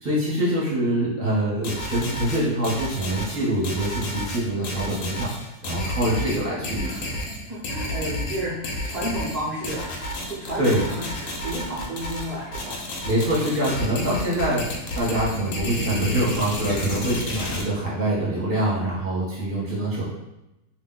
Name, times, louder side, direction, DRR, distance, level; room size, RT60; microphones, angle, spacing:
voice 1, 0.0-5.3 5.6-7.1 10.6-10.8 13.0-20.1, right 1 dB, 10° right, -7 dB, 0.9 m, -24 dB
sound 1, 1.6-17.6, left 1 dB, 65° left, 0.9 m, -31 dB
voice 2, 7.5-13.0 16.8-17.1, right 1 dB, 50° right, -7 dB, 0.4 m, -32 dB
2.6 x 2.2 x 3.9 m, 0.94 s
omnidirectional pair, 1.7 m